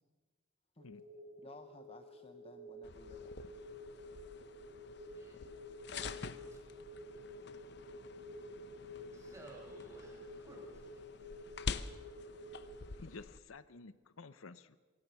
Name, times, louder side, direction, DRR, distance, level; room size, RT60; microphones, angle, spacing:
sound 1, 0.8-12.8, left 1 dB, 50° right, 2.0 m, -51 dB
voice 1, 1.4-3.4, left 2 dB, 30° left, 7 dB, 0.8 m, -56 dB
sound 2, 2.8-13.4, left 4 dB, 55° left, 0.8 m, -47 dB
voice 2, 9.1-11.1, right 1 dB, 15° right, 0 dB, 5.1 m, -55 dB
voice 3, 13.0-14.8, left 3 dB, 85° left, 14 dB, 0.8 m, -52 dB
26.0 x 16.0 x 6.9 m, 1.4 s
head